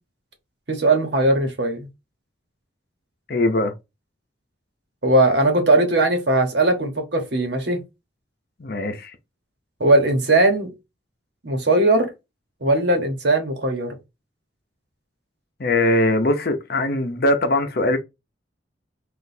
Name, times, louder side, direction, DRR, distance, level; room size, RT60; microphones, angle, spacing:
voice 1, 0.7-1.9 5.0-7.8 9.8-10.7 11.4-12.1 12.6-13.9, right 2 dB, 60° right, 1.2 m, -19 dB
voice 2, 3.3-3.7 8.6-9.2 15.6-18.0, left 1 dB, 55° left, 0.7 m, -21 dB
6.0 x 2.5 x 2.7 m
head